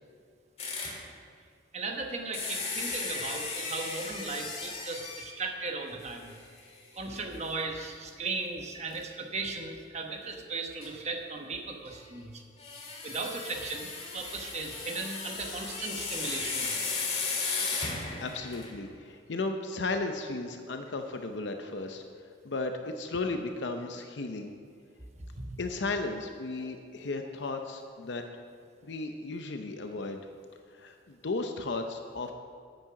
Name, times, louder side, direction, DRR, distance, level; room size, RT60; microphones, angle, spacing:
sound 1, 0.6-1.0 2.3-5.4 6.0-6.1 6.6-6.7 8.9-9.0 10.8-10.9 12.6-18.8, left 4 dB, 35° left, 1.8 m, -35 dB
voice 1, 1.7-6.3 6.9-12.4 13.0-13.9 14.1-16.7 17.5-17.6 25.4-25.6, right 3 dB, 35° right, 3 dB, 1.1 m, -37 dB
voice 2, 18.2-22.0 22.4-24.5 25.6-28.2 28.8-30.2 30.7-32.3, left 3 dB, 70° left, 5 dB, 0.7 m, -35 dB
9.6 x 9.1 x 5.9 m, 2.3 s
head